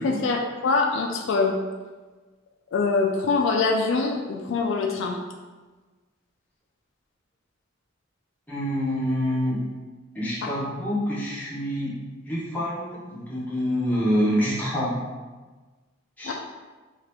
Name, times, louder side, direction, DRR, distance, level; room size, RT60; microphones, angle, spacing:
voice 1, 0.0-1.6 2.7-5.2 10.4-10.5 16.2-16.3, left 4 dB, 65° left, 1 dB, 0.3 m, -24 dB
voice 2, 8.5-9.7 10.1-15.0 16.2-16.3, equal, 10° left, -7 dB, 0.7 m, -26 dB
2.7 x 2.4 x 3.3 m, 1.3 s
head